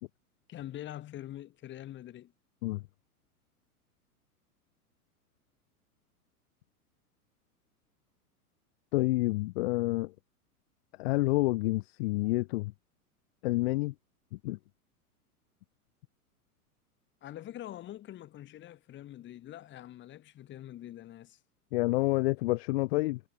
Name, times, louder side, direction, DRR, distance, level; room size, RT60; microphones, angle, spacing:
voice 1, 0.5-2.3 17.2-21.4, left 13 dB, 25° left, 2.2 m, -44 dB
voice 2, 8.9-10.1 11.0-12.7 13.4-13.9 14.4-14.6 21.7-23.2, left 21 dB, 40° left, 1.0 m, -28 dB
figure-of-eight pair, 100°, 45 cm